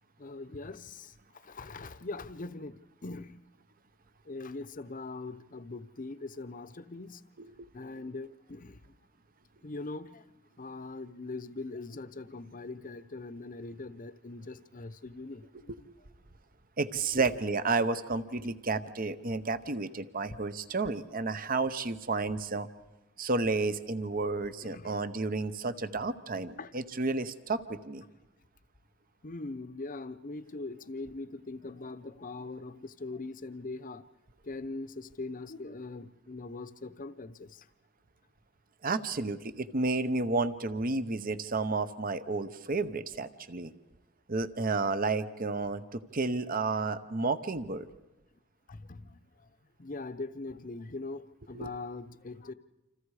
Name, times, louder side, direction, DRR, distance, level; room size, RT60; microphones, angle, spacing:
voice 1, 0.2-3.4 4.3-7.2 7.7-8.8 9.6-10.3 10.6-15.9 24.6-24.9 26.6-26.7 29.2-34.0 34.4-37.7 48.7-49.5 49.8-52.5, left 3 dB, 40° left, 0.8 m, -41 dB
voice 2, 16.8-22.7 23.2-28.0 38.8-43.7 44.3-47.9 51.5-51.7, right 3 dB, 45° right, 0.9 m, -31 dB
28.5 x 27.0 x 4.9 m
head